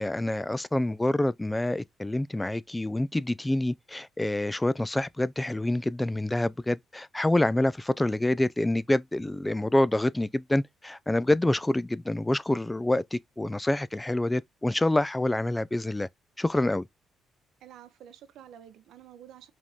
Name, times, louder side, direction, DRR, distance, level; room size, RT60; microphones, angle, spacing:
voice 1, 0.0-16.1 16.4-16.9, left 1 dB, 10° left, 0.3 m, -27 dB
voice 2, 17.6-19.5, right 10 dB, 80° right, 0.7 m, -49 dB
5.1 x 2.6 x 3.6 m
cardioid pair, 90°, 0 cm